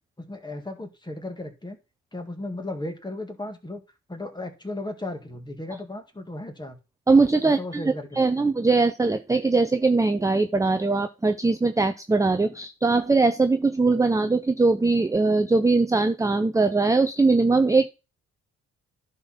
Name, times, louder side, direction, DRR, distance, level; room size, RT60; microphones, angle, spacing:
voice 1, 0.2-1.8 2.1-3.8 4.1-6.8 7.4-8.5, left 2 dB, 15° left, 6 dB, 2.0 m, -35 dB
voice 2, 7.1-7.8 8.2-17.9, right 3 dB, 10° right, 9 dB, 0.6 m, -21 dB
10.5 x 4.4 x 5.8 m, 0.29 s
cardioid pair, 90°, 30 cm